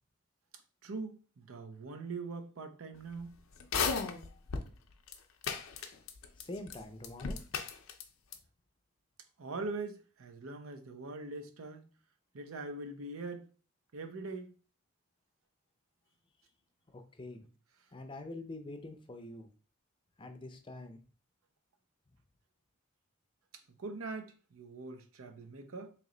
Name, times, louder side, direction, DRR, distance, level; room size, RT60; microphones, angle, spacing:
voice 1, 0.8-3.3 9.4-11.9 12.3-13.4 13.9-14.5 23.8-25.9, right 3 dB, 85° right, 0.6 m, -42 dB
sound 1, 3.6-4.7 5.1-5.2 5.4-6.4 6.7-6.8 7.0-8.0 8.3-8.4, left 5 dB, 80° left, 0.6 m, -34 dB
voice 2, 6.4-7.4 16.9-17.5 17.9-19.5 20.2-21.0, left 2 dB, 25° left, 0.5 m, -45 dB
3.1 x 2.9 x 3.8 m
head